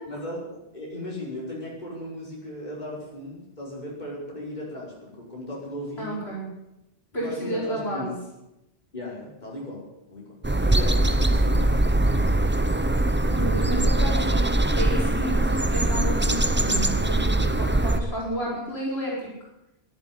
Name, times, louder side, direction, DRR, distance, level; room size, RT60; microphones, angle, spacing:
voice 1, 0.1-0.4 0.7-6.3 7.1-8.1 8.9-12.0, left 1 dB, 40° left, -4 dB, 5.6 m, -36 dB
voice 2, 6.0-6.5 7.1-8.1 13.3-19.3, equal, 65° left, -5 dB, 5.1 m, -31 dB
sound 1, 10.4-18.0, right 1 dB, 10° right, 0.7 m, -22 dB
12.5 x 12.0 x 9.3 m, 0.91 s
omnidirectional pair, 1.2 m